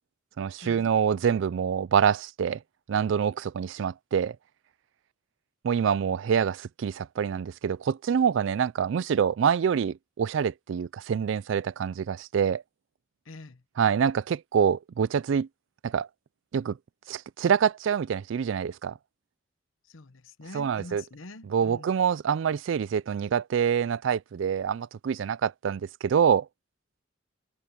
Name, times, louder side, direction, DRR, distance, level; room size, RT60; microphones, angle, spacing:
voice 1, 0.4-2.6 2.9-4.4 5.6-12.6 13.8-15.5 15.8-16.1 16.5-16.8 17.1-18.9 20.5-21.0 21.4-26.5, right 7 dB, 65° right, 0.3 m, -26 dB
voice 2, 13.3-13.6 19.9-21.9, left 2 dB, 75° left, 1.0 m, -45 dB
head